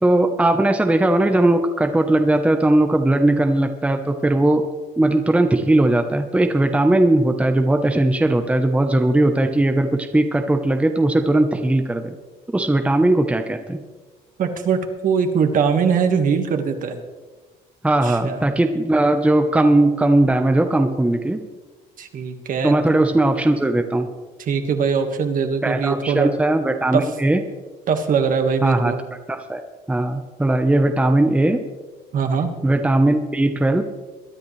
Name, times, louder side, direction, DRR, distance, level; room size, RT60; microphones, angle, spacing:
voice 1, 0.0-4.6 5.0-12.2 12.5-13.8 17.8-21.4 22.6-24.1 25.6-27.4 28.6-28.9 29.3-29.6 29.9-31.6 32.6-33.8, right 1 dB, 5° right, 6 dB, 0.9 m, -18 dB
voice 2, 14.4-17.0 18.0-18.4 22.0-22.7 24.4-26.3 26.9-27.0 27.9-29.0 32.1-32.5, right 6 dB, 55° right, 6 dB, 1.7 m, -21 dB
22.0 x 10.5 x 3.3 m, 1.3 s
cardioid pair, 110°, 17 cm